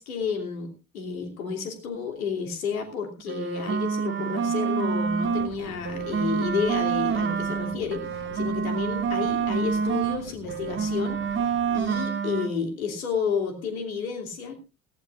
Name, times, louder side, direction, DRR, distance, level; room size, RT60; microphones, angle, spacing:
voice 1, 0.0-8.0 8.3-11.2 11.7-14.5, left 5 dB, 70° left, 4 dB, 3.0 m, -31 dB
sound 1, 3.2-5.5 5.8-10.2 10.5-12.5, right 6 dB, 25° right, 1.3 m, -27 dB
sound 2, 4.8-12.1, left 9 dB, 50° left, 1.3 m, -45 dB
18.5 x 15.5 x 2.5 m, 0.28 s
figure-of-eight pair, 70°, 43 cm